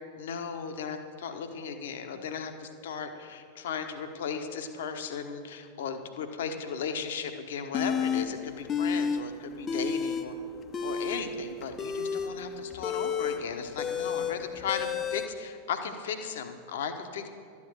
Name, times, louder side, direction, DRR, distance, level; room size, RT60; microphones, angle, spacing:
voice 1, 0.2-10.3 10.8-17.3, left 6 dB, 60° left, 7 dB, 1.1 m, -36 dB
sound 1, 7.7-8.3 8.7-9.2 9.5-10.3 10.6-15.3, left 6 dB, 25° left, 0.8 m, -30 dB
12.5 x 9.8 x 6.4 m, 2.4 s
figure-of-eight pair, 90°, 0 cm